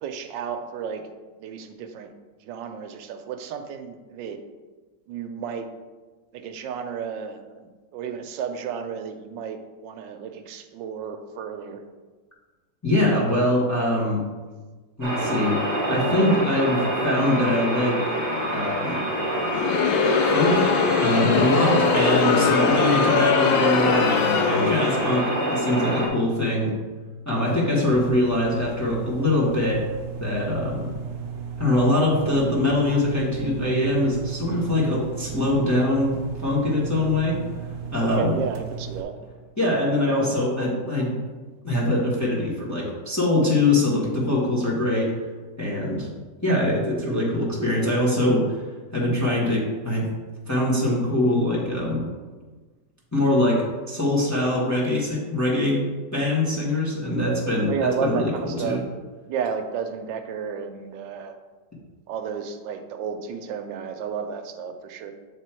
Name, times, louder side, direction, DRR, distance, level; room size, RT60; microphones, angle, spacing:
voice 1, 0.0-1.0 1.4-2.1 2.4-4.4 5.1-5.7 6.3-11.8 38.0-39.1 57.7-58.8 59.2-61.3 62.1-65.1, right 7 dB, 85° right, 7 dB, 1.3 m, -32 dB
voice 2, 12.8-14.2 15.0-15.6 15.9-18.0 18.5-19.0 20.3-20.6 21.0-26.7 27.2-29.8 30.2-30.9 31.6-37.4 37.9-38.4 39.6-41.2 41.6-45.1 45.6-46.1 46.4-48.6 48.9-50.1 50.5-52.0 53.1-55.9 56.1-58.8, left 1 dB, 10° left, -5 dB, 1.1 m, -23 dB
sound 1, 15.0-26.1, right 1 dB, 30° right, 1.0 m, -26 dB
Crowd, 19.4-25.2, left 6 dB, 85° left, 1.3 m, -22 dB
sound 2, 27.9-39.0, right 6 dB, 65° right, 0.7 m, -35 dB
7.5 x 3.4 x 4.4 m, 1.3 s
omnidirectional pair, 2.0 m